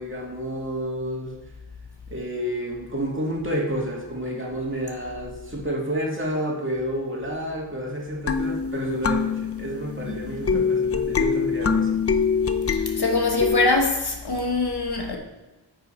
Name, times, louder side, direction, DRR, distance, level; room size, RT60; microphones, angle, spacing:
voice 1, 0.0-1.3 2.1-11.9, equal, 25° right, 2.1 m, -30 dB
sound 1, 8.3-13.7, left 5 dB, 30° left, 0.5 m, -24 dB
voice 2, 10.1-10.6 12.7-15.2, left 3 dB, 55° left, 1.3 m, -24 dB
9.3 x 4.1 x 4.3 m
cardioid pair, 45°, 45 cm